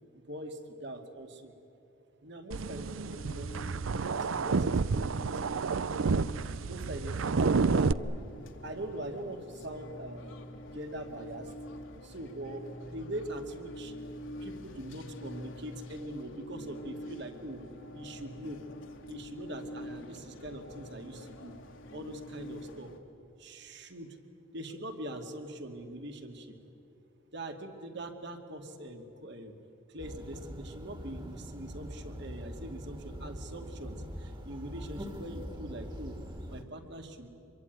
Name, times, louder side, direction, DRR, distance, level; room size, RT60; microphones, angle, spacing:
voice 1, 0.3-1.5 2.2-3.5 3.9-6.3 6.7-8.0 8.6-10.3 10.7-11.5 12.0-13.9 14.4-17.6 17.9-18.6 19.1-21.6 21.9-22.9 23.4-24.2 24.5-26.5 27.3-29.5 29.9-36.2 36.5-37.3, right 1 dB, 60° right, 5 dB, 2.5 m, -42 dB
sound 1, 2.5-7.9, right 4 dB, 80° right, 0.6 m, -29 dB
sound 2, 3.1-23.0, equal, 70° left, 2.2 m, -46 dB
sound 3, 30.0-36.6, equal, 25° right, 2.0 m, -43 dB
26.5 x 23.0 x 9.5 m, 2.8 s
head